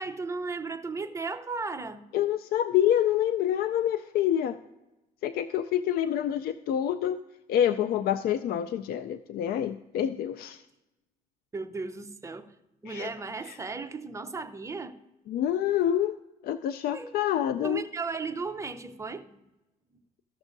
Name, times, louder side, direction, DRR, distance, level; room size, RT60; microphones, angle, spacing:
voice 1, 0.0-2.0 11.5-12.5 12.8-15.0 16.9-17.1 17.6-19.4, right 4 dB, 15° right, 6 dB, 0.7 m, -35 dB
voice 2, 2.1-4.6 5.2-7.2 7.5-10.6 12.9-13.1 13.4-13.6 15.3-16.2 16.4-17.8, left 10 dB, 65° left, 11 dB, 0.4 m, -27 dB
15.0 x 6.2 x 2.6 m, 1.0 s
cardioid pair, 110°, 17 cm